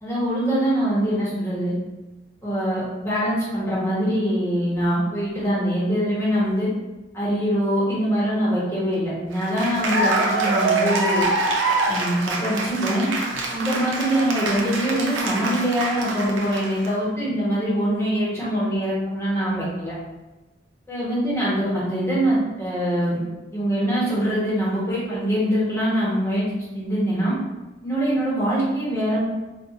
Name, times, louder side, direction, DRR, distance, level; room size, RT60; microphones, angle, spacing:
voice 1, 0.0-1.7 2.4-6.7 7.1-11.3 11.9-13.1 13.5-19.9 20.9-23.2 23.5-26.4 26.7-27.3 27.8-29.2, equal, 15° left, -8 dB, 1.0 m, -23 dB
Cheering / Applause, 9.3-16.9, right 2 dB, 85° right, 0.6 m, -25 dB
4.2 x 2.4 x 2.4 m, 1.1 s
head